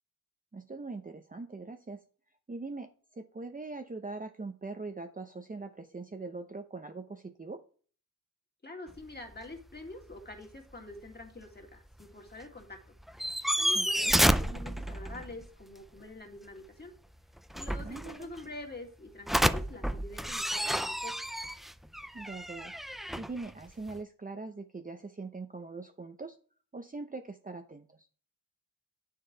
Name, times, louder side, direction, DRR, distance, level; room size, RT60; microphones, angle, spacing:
voice 1, 0.5-2.0 2.5-7.6 13.7-14.2 17.8-18.3 22.1-22.7 23.1-26.4 26.7-28.1, right 3 dB, 20° right, 6 dB, 0.7 m, -42 dB
voice 2, 8.6-12.8 13.6-16.9 17.5-21.1, left 2 dB, 25° left, 3 dB, 2.2 m, -46 dB
sound 1, 8.9-9.0 9.3-9.4 9.8-10.2 12.0-12.1 12.4-12.5 13.0-15.5 17.4-18.4 19.3-24.0, equal, ahead, 0.4 m, -30 dB
9.5 x 6.7 x 4.5 m, 0.42 s
wide cardioid pair, 90°, 40 cm